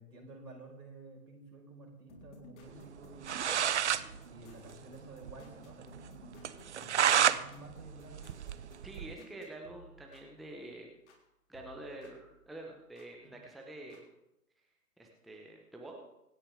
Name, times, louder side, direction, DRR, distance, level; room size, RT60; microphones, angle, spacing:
voice 1, 0.0-3.6 4.2-8.4 13.2-13.4, right 2 dB, 80° right, -1 dB, 5.2 m, -52 dB
sound 1, 2.1-11.2 11.5-13.1 13.9-14.0, left 1 dB, 45° left, 4.0 m, -58 dB
sound 2, 3.0-3.1 3.2-4.0 4.4-4.5 4.7-4.8 5.2-5.3 5.7-5.8 6.4-7.4 7.8-9.1, right 9 dB, 45° right, 0.7 m, -29 dB
voice 2, 8.8-10.9 11.5-14.0 15.0-16.0, right 1 dB, ahead, 0 dB, 0.8 m, -47 dB
25.0 x 9.8 x 3.6 m, 0.87 s
figure-of-eight pair, 130°, 48 cm